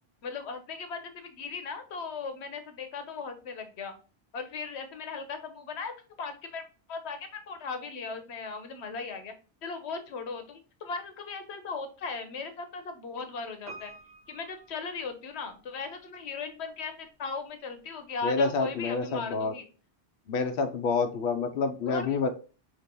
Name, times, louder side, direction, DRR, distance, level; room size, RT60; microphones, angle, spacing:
voice 1, 0.2-3.9 4.3-5.9 6.2-6.6 6.9-9.3 9.6-13.9 14.3-19.7 21.9-22.1, left 4 dB, 90° left, 8 dB, 1.0 m, -37 dB
Piano, 13.7-15.7 16.0-16.1, right 3 dB, 65° right, 1.4 m, -49 dB
voice 2, 18.2-19.5 20.3-22.3, left 4 dB, 65° left, 6 dB, 0.8 m, -28 dB
5.2 x 2.9 x 2.9 m, 0.35 s
omnidirectional pair, 1.1 m